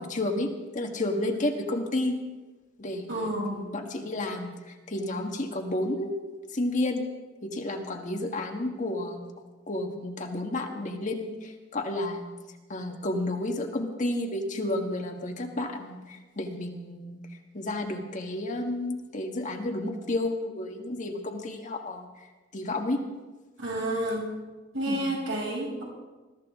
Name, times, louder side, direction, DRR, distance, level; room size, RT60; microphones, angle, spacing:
voice 1, 0.0-2.2 2.8-6.2 6.5-7.0 7.4-9.2 9.7-12.3 12.7-17.2 17.5-22.1 22.5-23.0 24.9-25.1, left 1 dB, 40° left, 3 dB, 1.5 m, -31 dB
voice 2, 3.1-3.7 23.6-24.3 24.7-25.8, right 1 dB, 85° right, -3 dB, 6.3 m, -30 dB
21.5 x 14.0 x 3.6 m, 1.2 s
head